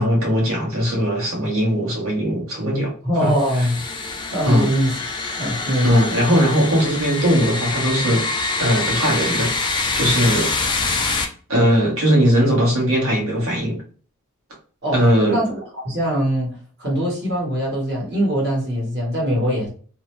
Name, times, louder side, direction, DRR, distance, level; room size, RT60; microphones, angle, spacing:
voice 1, 0.0-2.9 3.2-3.3 4.5-4.7 5.8-9.5 9.9-10.5 11.5-13.8 14.9-15.4, equal, 65° right, 1.0 m, -19 dB
voice 2, 3.0-3.8 4.3-5.0 5.4-6.0 14.8-15.0 15.3-19.7, equal, 45° right, 1.2 m, -22 dB
sound 1, 3.3-11.2, left 3 dB, 20° left, 0.3 m, -25 dB
2.7 x 2.1 x 3.0 m
head